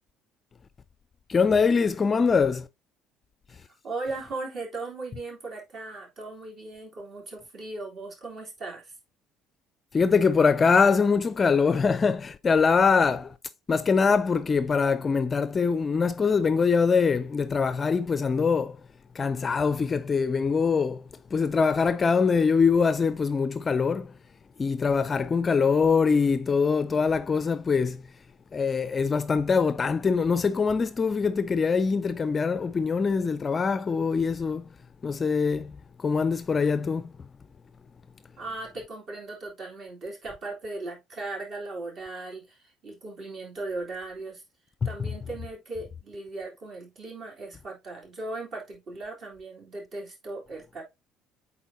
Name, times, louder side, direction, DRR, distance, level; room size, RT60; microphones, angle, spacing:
voice 1, 1.3-2.7 9.9-13.3 13.7-18.8 19.1-21.0 21.3-24.1 24.6-28.0 28.5-34.7 35.0-35.7 36.0-37.1 45.0-45.1, left 5 dB, 30° left, 0.5 m, -23 dB
voice 2, 3.7-8.9 38.4-44.4 44.8-50.8, right 2 dB, 45° right, 3.3 m, -38 dB
8.2 x 4.2 x 2.8 m
figure-of-eight pair, 55°, 0 cm